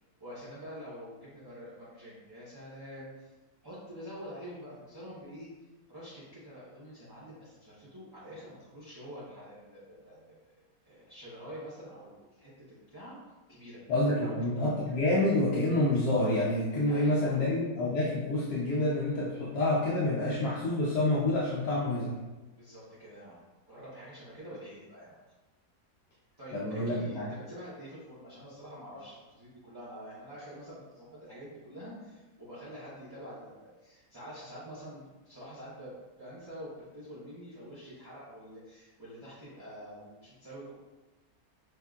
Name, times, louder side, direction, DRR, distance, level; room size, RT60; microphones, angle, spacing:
voice 1, 0.2-3.3 3.6-5.5 5.9-10.4 10.8-13.2 13.5-13.8 14.2-14.4 16.9-17.4 22.6-23.4 23.7-25.2 26.4-40.8, equal, 20° right, -10 dB, 0.9 m, -46 dB
voice 2, 13.9-22.1 26.5-27.3, left 1 dB, 85° left, -6 dB, 1.3 m, -28 dB
6.4 x 2.6 x 2.4 m, 1.2 s
omnidirectional pair, 1.6 m